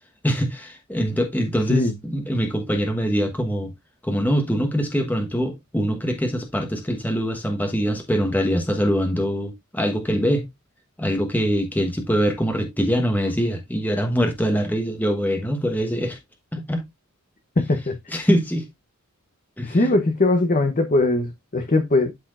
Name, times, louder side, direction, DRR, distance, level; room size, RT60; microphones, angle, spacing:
voice 1, 0.2-3.7 4.0-10.5 11.0-16.2 16.5-16.8 18.1-18.6 19.6-19.9, equal, 10° left, 1.1 m, -23 dB
voice 2, 17.6-18.2 19.6-22.1, left 2 dB, 35° left, 0.8 m, -20 dB
12.0 x 4.2 x 2.4 m
head